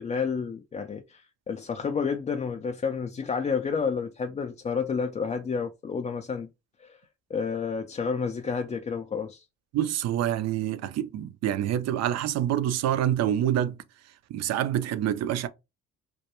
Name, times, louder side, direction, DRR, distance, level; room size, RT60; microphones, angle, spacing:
voice 1, 0.0-6.5 6.8-7.0 7.3-9.4, left 5 dB, 25° left, 0.3 m, -30 dB
voice 2, 9.7-13.8 14.3-15.5, right 11 dB, 55° right, 0.4 m, -26 dB
2.3 x 2.2 x 2.9 m
hypercardioid pair, 60°, 32 cm